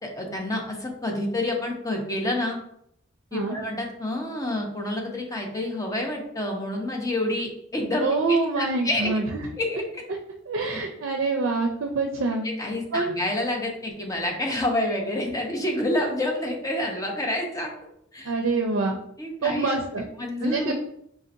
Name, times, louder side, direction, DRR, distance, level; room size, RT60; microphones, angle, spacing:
voice 1, 0.0-2.6 3.3-9.1 9.6-10.0 12.6-17.7 18.1-18.3 19.2-19.8 20.2-20.7, left 1 dB, 15° left, 1 dB, 0.7 m, -28 dB
voice 2, 8.0-9.2 10.5-12.5 12.9-13.2 18.2-19.0 19.4-20.0 20.4-20.7, right 3 dB, 75° right, 3 dB, 0.4 m, -25 dB
5.0 x 2.8 x 2.5 m, 0.73 s
head